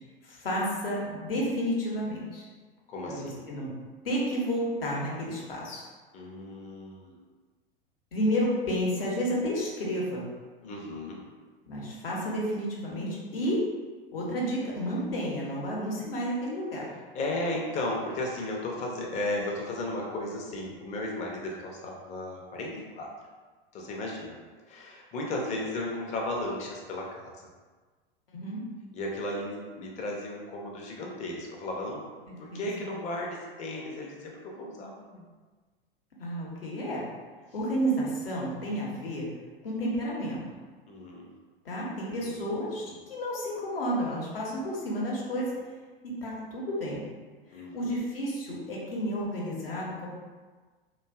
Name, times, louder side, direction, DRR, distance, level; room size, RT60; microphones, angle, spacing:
voice 1, 0.2-2.4 3.1-3.7 4.0-5.8 8.1-10.3 11.7-13.6 14.1-16.8 28.3-28.6 32.3-32.7 36.2-37.1 37.5-39.3 39.6-40.4 41.6-45.5 46.0-47.1 47.5-50.1, equal, 75° left, -4 dB, 0.8 m, -31 dB
voice 2, 2.9-3.4 6.1-7.2 10.6-11.2 17.1-23.1 23.7-24.4 24.7-27.5 28.9-32.0 32.4-35.3 40.9-41.2 42.1-42.5 42.8-43.0 47.5-48.0, left 1 dB, 25° left, -1 dB, 0.5 m, -35 dB
2.5 x 2.2 x 2.2 m, 1.4 s
figure-of-eight pair, 85°, 29 cm